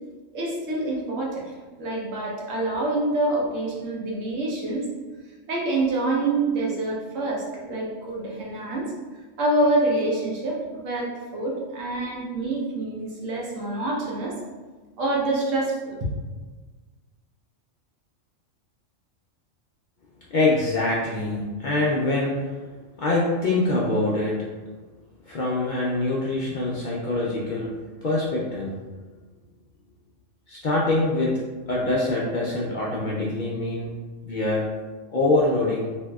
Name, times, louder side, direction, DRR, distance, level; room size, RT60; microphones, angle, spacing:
voice 1, 0.3-1.4 1.8-4.9 5.5-8.9 9.4-14.3 15.0-16.0, right 2 dB, 70° right, -3 dB, 1.1 m, -26 dB
voice 2, 20.3-22.4 23.0-24.4 25.3-28.8 30.5-31.4 31.7-33.9 34.2-34.7 35.1-35.9, left 2 dB, 70° left, -5 dB, 0.4 m, -24 dB
3.5 x 2.6 x 2.3 m, 1.3 s
omnidirectional pair, 1.4 m